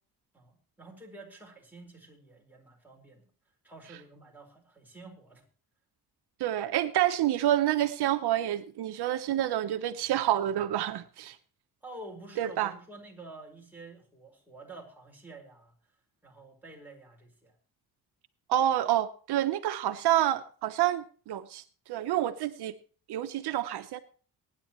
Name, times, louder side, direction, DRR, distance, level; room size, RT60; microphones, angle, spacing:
voice 1, 0.3-3.3 3.6-5.4 11.8-15.7 16.2-17.5, right 2 dB, 5° right, -1 dB, 4.6 m, -49 dB
voice 2, 6.4-11.4 12.4-12.7 18.5-22.7 23.1-24.0, right 12 dB, 80° right, 9 dB, 0.9 m, -28 dB
23.5 x 9.9 x 3.1 m, 0.40 s
cardioid pair, 110°, 39 cm